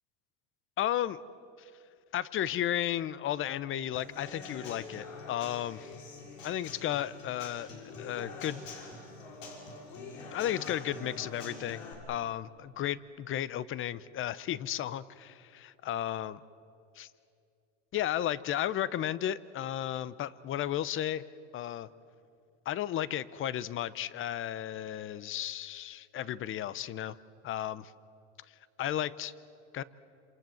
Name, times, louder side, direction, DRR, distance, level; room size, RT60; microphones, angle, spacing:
voice 1, 0.8-1.2 1.6-1.7 2.1-5.9 6.4-8.6 10.3-16.4 17.0-17.1 17.9-21.2 21.5-21.9 22.7-27.2 27.4-27.9 28.8-29.3 29.7-29.8, left 11 dB, 35° left, 18 dB, 0.8 m, -34 dB
Human voice / Acoustic guitar / Drum, 3.9-11.9, left 3 dB, 90° left, 6.6 m, -45 dB
27.5 x 27.0 x 7.8 m, 2.5 s
supercardioid pair, 125°, 37 cm